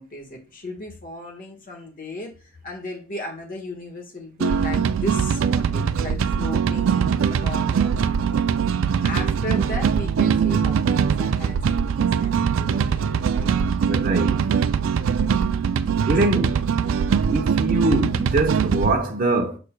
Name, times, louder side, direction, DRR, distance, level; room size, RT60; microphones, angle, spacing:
voice 1, 0.0-8.5 9.0-13.0 13.3-13.7 15.1-15.9 16.1-16.4 16.9-17.2, left 2 dB, 45° left, 1.4 m, -36 dB
sound 1, 4.4-18.9, right 7 dB, 75° right, 0.4 m, -22 dB
voice 2, 13.9-14.4 16.0-16.6 17.2-19.6, right 2 dB, 45° right, 0.9 m, -23 dB
6.8 x 6.4 x 2.2 m
head